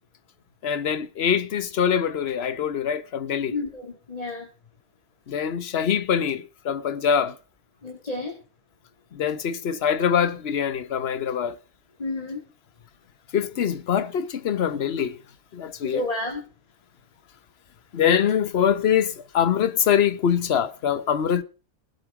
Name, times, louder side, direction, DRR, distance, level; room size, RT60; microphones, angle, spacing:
voice 1, 0.6-3.6 5.3-7.4 9.1-11.6 13.3-15.2 15.5-16.0 17.9-21.4, left 8 dB, 50° left, 1.1 m, -24 dB
voice 2, 3.5-4.5 7.8-8.3 12.0-12.4 15.8-16.4, left 2 dB, 25° left, 2.0 m, -30 dB
20.5 x 7.9 x 4.9 m
omnidirectional pair, 1.4 m